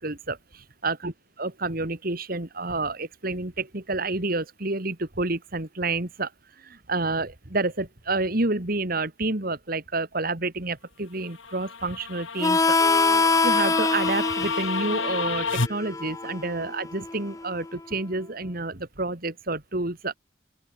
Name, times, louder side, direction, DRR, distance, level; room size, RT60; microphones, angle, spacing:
voice 1, 0.0-1.1 1.4-6.3 6.6-12.8 13.4-20.1, right 2 dB, 45° right, 2.1 m, -29 dB
sound 1, 11.2-15.7, left 4 dB, 75° left, 2.0 m, -31 dB
Harmonica, 12.4-17.7, left 3 dB, 15° left, 0.5 m, -25 dB
open air
head